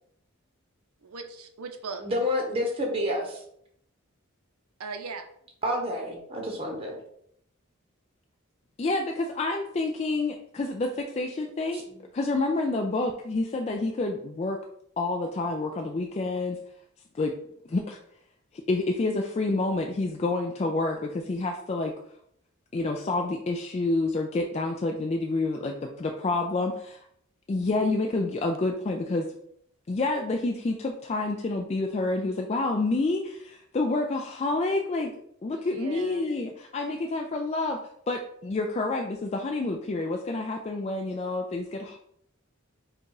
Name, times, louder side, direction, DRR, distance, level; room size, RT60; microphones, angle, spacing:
voice 1, 1.0-2.0 4.8-5.3 35.6-36.2, right 4 dB, 85° right, 6 dB, 0.7 m, -38 dB
voice 2, 2.0-3.4 5.6-6.9 11.7-11.8, left 1 dB, 25° right, 0 dB, 0.9 m, -29 dB
voice 3, 8.8-11.8 12.1-14.6 15.0-16.6 17.1-17.3 17.7-18.0 18.7-21.9 22.7-27.0 27.5-29.3 29.9-35.1 35.4-37.8 38.1-42.0, left 2 dB, 30° left, 2 dB, 0.3 m, -28 dB
4.7 x 2.4 x 4.8 m, 0.70 s
head